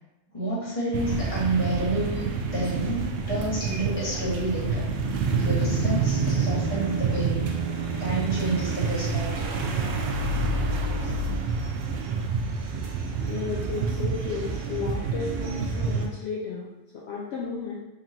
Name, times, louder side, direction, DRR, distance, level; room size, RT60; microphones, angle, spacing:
voice 1, 0.3-4.9 5.2-7.5 8.0-9.5 11.0-11.1, right 1 dB, 30° left, -7 dB, 1.4 m, -29 dB
sound 1, 0.9-16.1, right 4 dB, 80° right, 0.9 m, -28 dB
sound 2, 5.0-11.3, equal, 40° right, 0.6 m, -40 dB
sound 3, 5.3-9.6, right 7 dB, 10° right, 1.2 m, -35 dB
voice 2, 13.3-17.8, left 5 dB, 70° left, -4 dB, 0.8 m, -33 dB
3.8 x 3.4 x 2.8 m, 0.97 s
omnidirectional pair, 1.2 m